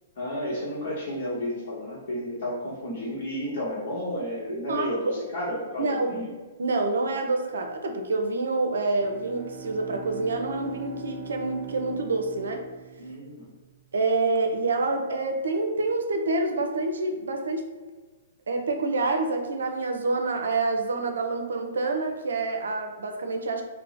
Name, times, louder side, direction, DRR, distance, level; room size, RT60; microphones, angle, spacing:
voice 1, 0.2-6.3 13.0-13.5, left 1 dB, 50° left, -7 dB, 0.9 m, -32 dB
voice 2, 4.5-5.2 5.8-6.1 6.6-12.6 13.9-17.7 18.5-23.6, right 3 dB, 70° right, 4 dB, 0.4 m, -27 dB
Bowed string instrument, 8.9-13.6, right 4 dB, 15° right, 0.5 m, -41 dB
2.7 x 2.0 x 4.0 m, 1.3 s
figure-of-eight pair, 115°, 0 cm